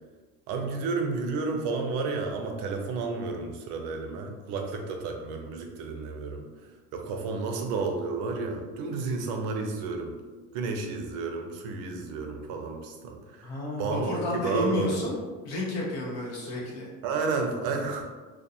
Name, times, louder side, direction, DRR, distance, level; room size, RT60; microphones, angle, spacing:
voice 1, 0.5-6.4 6.9-10.1 10.5-15.1 17.0-18.0, right 4 dB, 80° right, 3 dB, 0.5 m, -31 dB
voice 2, 13.4-15.1 15.4-16.9, left 2 dB, 60° left, -4 dB, 0.9 m, -31 dB
2.4 x 2.2 x 2.7 m, 1.3 s
cardioid pair, 160°, 30 cm